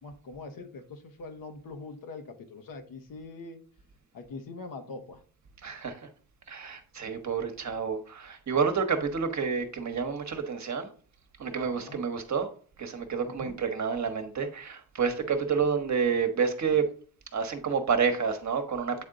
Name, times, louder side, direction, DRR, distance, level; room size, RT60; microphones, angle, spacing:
voice 1, 0.0-3.6 4.1-5.2 11.7-12.0 13.3-13.6, left 3 dB, 50° left, 1.1 m, -43 dB
voice 2, 5.6-6.1 6.5-10.9 11.4-12.5 12.8-16.9 17.3-19.0, right 6 dB, 40° right, 1.2 m, -29 dB
8.5 x 3.6 x 3.8 m
supercardioid pair, 60°, 42 cm